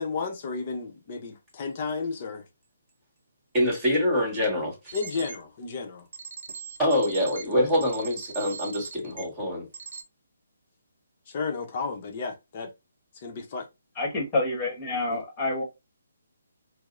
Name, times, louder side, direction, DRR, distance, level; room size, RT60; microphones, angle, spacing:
voice 1, 0.0-2.5 4.9-6.1 11.3-12.7 13.1-13.7 15.1-15.2, left 4 dB, 35° left, 0.7 m, -33 dB
voice 2, 3.5-4.9 6.8-9.7, left 1 dB, 15° right, 1.7 m, -25 dB
sound 1, 4.9-5.4 6.1-9.2 9.7-10.0, right 5 dB, 65° right, 0.7 m, -40 dB
voice 3, 14.0-15.6, left 2 dB, 20° left, 1.3 m, -28 dB
4.5 x 2.0 x 2.5 m
hypercardioid pair, 155°, 0 cm